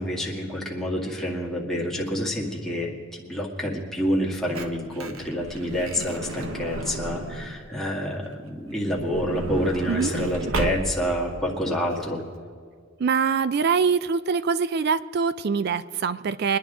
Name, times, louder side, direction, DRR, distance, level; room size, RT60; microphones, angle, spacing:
voice 1, 0.0-12.2, equal, ahead, -3 dB, 1.9 m, -28 dB
Truck / Door, 4.1-7.7 8.7-11.2 11.9-12.0 12.2-12.4, right 2 dB, 80° right, 1.1 m, -33 dB
voice 2, 13.0-16.6, right 5 dB, 50° right, 14 dB, 0.4 m, -24 dB
23.5 x 10.5 x 3.7 m, 2.1 s
head